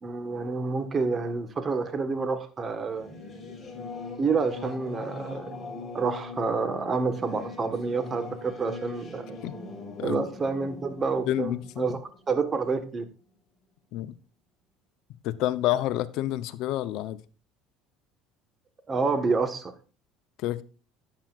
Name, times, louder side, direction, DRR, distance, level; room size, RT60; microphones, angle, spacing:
voice 1, 0.0-3.1 4.2-5.6 5.9-9.4 10.0-12.0 12.3-13.1 18.9-19.7, right 4 dB, 30° right, 1.5 m, -28 dB
Singing / Musical instrument, 2.8-12.9, left 3 dB, 20° left, 5.5 m, -41 dB
voice 2, 11.3-11.9 13.9-14.1 15.2-17.2 20.4-20.6, left 14 dB, 65° left, 0.8 m, -28 dB
11.5 x 8.9 x 2.5 m
supercardioid pair, 95°, 0 cm